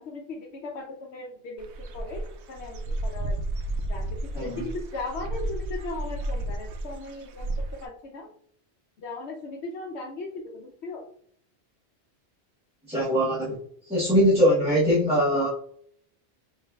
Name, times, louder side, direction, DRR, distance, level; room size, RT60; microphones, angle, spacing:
voice 1, 0.0-3.4 3.8-7.5 7.8-8.3 9.0-11.1, left 2 dB, 80° left, 1 dB, 0.9 m, -38 dB
Dog / Bird, 1.6-7.9, right 1 dB, 80° right, 0.9 m, -32 dB
voice 2, 12.9-13.6 13.9-15.5, equal, 5° right, -9 dB, 0.9 m, -21 dB
5.5 x 2.8 x 2.3 m, 0.63 s
omnidirectional pair, 1.1 m